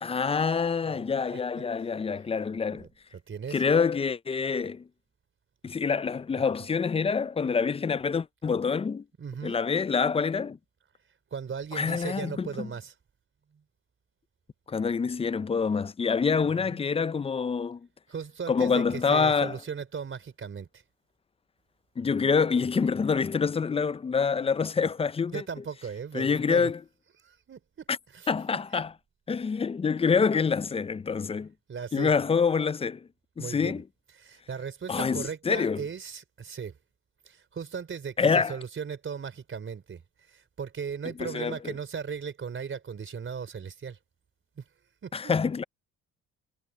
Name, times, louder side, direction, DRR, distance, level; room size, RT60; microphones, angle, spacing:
voice 1, 0.0-2.9 3.5-4.9 5.6-9.0 9.4-10.6 11.7-12.7 14.7-17.8 18.5-19.6 22.0-25.4 26.1-26.8 27.9-28.0 28.3-28.9 29.3-31.5 31.9-33.1 33.4-33.8 34.9-35.8 38.2-38.6 41.2-41.7 45.1-45.6, left 5 dB, 20° left, 0.4 m, -26 dB
voice 2, 0.8-1.6 2.8-3.6 9.2-9.6 11.3-12.9 13.5-13.6 16.4-16.8 18.1-20.8 25.3-26.7 27.2-27.6 28.1-28.3 31.7-32.1 33.4-33.8 34.2-36.8 37.2-44.0 44.6-44.7 45.0-45.3, right 6 dB, 40° right, 4.0 m, -37 dB
cardioid pair, 105°, 31 cm